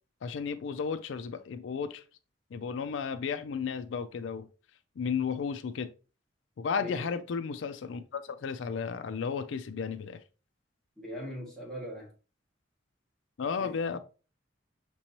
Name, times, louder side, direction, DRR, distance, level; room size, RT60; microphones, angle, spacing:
voice 1, 0.2-2.0 2.5-4.5 5.0-5.9 6.6-10.2 13.4-14.0, left 6 dB, 85° left, 0.4 m, -33 dB
voice 2, 6.8-7.1 11.0-12.1 13.6-14.0, equal, 5° left, 1.7 m, -41 dB
5.9 x 3.1 x 2.8 m
head